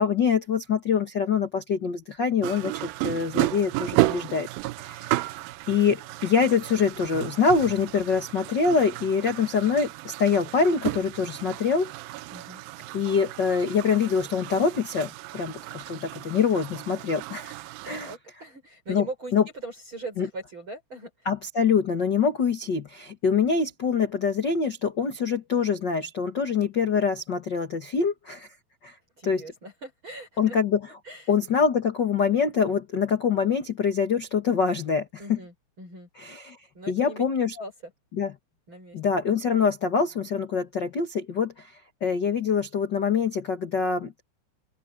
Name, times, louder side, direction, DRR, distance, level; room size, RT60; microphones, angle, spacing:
voice 1, 0.0-4.5 4.8-5.3 5.7-11.9 12.9-17.5 17.8-18.1 18.9-19.0 19.3-19.4 20.2-20.3 21.2-28.5 28.8-28.9 29.2-29.4 30.4-30.8 31.3-35.4 36.2-36.6 36.9-37.5 38.2-38.3 38.9-41.7 42.0-44.2, left 6 dB, 90° left, 0.9 m, -25 dB
sound 1, 2.4-18.2, right 19 dB, 85° right, 2.1 m, -33 dB
voice 2, 12.3-12.6 17.8-21.3 29.2-30.6 31.0-31.3 35.2-36.1 36.7-37.2 37.5-37.9 38.7-39.0, right 2 dB, 30° right, 6.1 m, -40 dB
open air
omnidirectional pair, 4.7 m